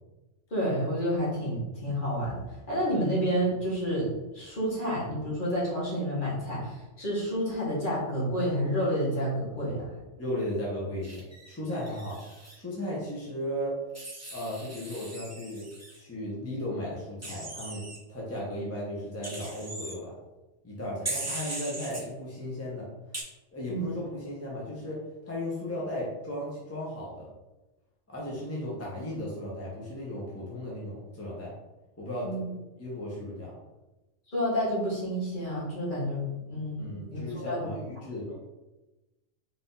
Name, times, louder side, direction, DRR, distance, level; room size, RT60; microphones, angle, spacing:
voice 1, 0.5-9.9 23.7-23.9 32.2-32.5 34.3-36.2 36.5-37.7, equal, 45° left, -7 dB, 1.7 m, -29 dB
voice 2, 10.2-12.2 12.5-13.8 14.3-15.7 16.0-17.8 18.1-20.1 20.6-22.9 23.5-25.0 25.3-27.3 28.1-31.5 32.0-32.3 32.8-33.5 36.8-38.3, left 1 dB, 15° left, -6 dB, 0.8 m, -35 dB
Wild animals, 11.0-12.6 13.9-16.0 17.2-18.0 19.2-19.9 21.0-22.0 23.1-23.2, right 2 dB, 15° right, 0.6 m, -39 dB
4.0 x 2.7 x 3.9 m, 1.1 s
omnidirectional pair, 1.3 m